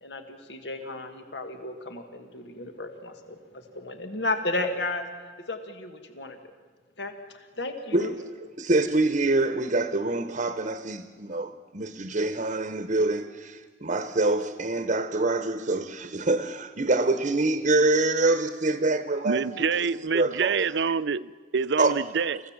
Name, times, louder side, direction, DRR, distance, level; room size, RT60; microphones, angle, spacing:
voice 1, 0.0-5.1 5.5-6.4 7.0-8.1, left 2 dB, 70° left, 1.7 m, -33 dB
voice 2, 8.6-19.7 20.1-20.6 21.8-22.0, right 2 dB, 45° right, 1.0 m, -25 dB
voice 3, 19.2-22.4, right 5 dB, 75° right, 0.5 m, -26 dB
28.0 x 15.5 x 7.3 m
head